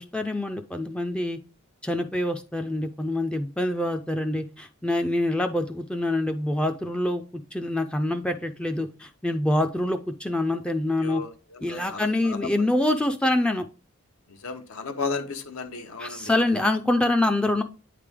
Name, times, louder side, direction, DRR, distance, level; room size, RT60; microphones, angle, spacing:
voice 1, 0.0-1.4 1.8-7.2 7.5-11.2 11.6-13.7 16.0-17.6, left 1 dB, 5° left, 0.3 m, -25 dB
voice 2, 11.0-12.4 14.4-16.3, left 4 dB, 80° left, 0.9 m, -34 dB
9.0 x 3.3 x 3.5 m
head